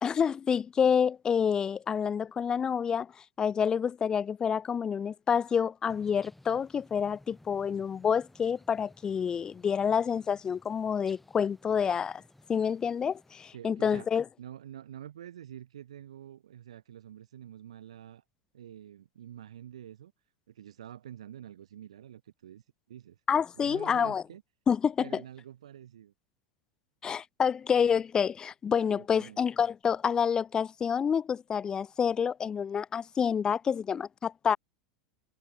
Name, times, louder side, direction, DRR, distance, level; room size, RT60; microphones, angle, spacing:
voice 1, 0.0-3.1 3.4-12.2 12.5-14.2 23.3-24.2 24.7-25.2 27.0-34.6, left 7 dB, 20° left, 0.4 m, -28 dB
sound 1, 5.8-13.5, left 1 dB, 5° left, 4.5 m, -58 dB
voice 2, 13.5-14.1 14.4-18.2 18.5-20.1 20.5-23.2 23.6-24.4 25.0-26.1 28.8-29.4, right 10 dB, 70° right, 5.1 m, -47 dB
figure-of-eight pair, 85°, 3 cm